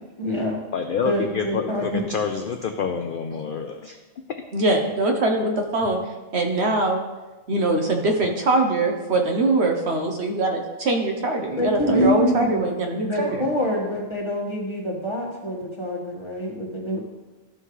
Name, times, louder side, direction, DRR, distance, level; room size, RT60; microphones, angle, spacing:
voice 1, 0.2-0.6 1.0-2.0 11.6-12.6 13.0-17.0, equal, 20° left, -2 dB, 1.5 m, -25 dB
voice 2, 0.7-4.0, left 6 dB, 60° left, 5 dB, 0.5 m, -27 dB
voice 3, 4.5-6.0 6.3-7.0 7.5-13.5, right 2 dB, 55° right, 3 dB, 1.1 m, -22 dB
13.0 x 5.6 x 3.2 m, 1.2 s
omnidirectional pair, 1.4 m